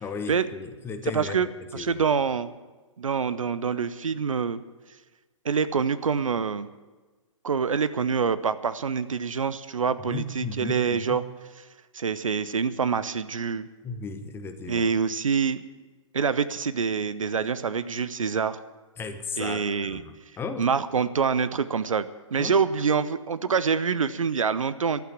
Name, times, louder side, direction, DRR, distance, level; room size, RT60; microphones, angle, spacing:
voice 1, 0.0-2.0 10.1-11.2 13.8-14.9 19.0-20.7 22.4-22.6, left 4 dB, 15° left, 7 dB, 1.1 m, -35 dB
voice 2, 1.1-1.5 1.7-2.5 3.0-4.6 5.4-6.7 7.4-11.2 11.9-13.7 14.7-15.6 16.1-18.6 19.4-20.0 20.6-22.1 22.3-25.0, right 6 dB, 80° right, 14 dB, 0.7 m, -26 dB
12.0 x 8.5 x 9.2 m, 1.3 s
figure-of-eight pair, 125°, 17 cm